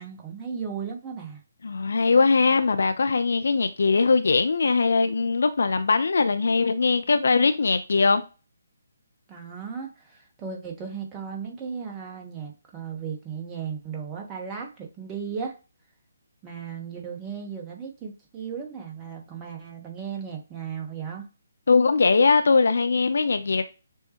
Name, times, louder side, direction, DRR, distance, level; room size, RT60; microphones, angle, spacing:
voice 1, 0.0-1.4 9.3-15.6 16.4-21.3, right 6 dB, 15° right, 1.1 m, -36 dB
voice 2, 1.6-8.2 21.7-23.6, left 4 dB, 60° left, 0.4 m, -21 dB
6.8 x 2.3 x 2.9 m
figure-of-eight pair, 140°, 0 cm